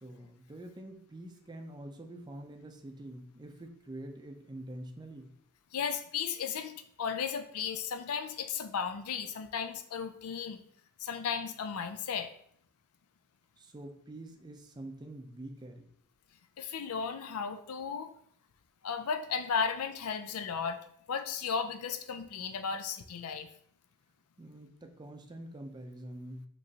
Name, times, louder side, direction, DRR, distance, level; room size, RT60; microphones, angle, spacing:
voice 1, 0.0-5.3 13.6-15.9 24.4-26.4, right 1 dB, 20° right, 5 dB, 0.4 m, -46 dB
voice 2, 5.7-10.6 11.0-12.3 16.6-18.1 18.8-20.8 21.1-23.5, left 6 dB, 85° left, 8 dB, 0.5 m, -35 dB
5.3 x 3.1 x 2.8 m, 0.66 s
head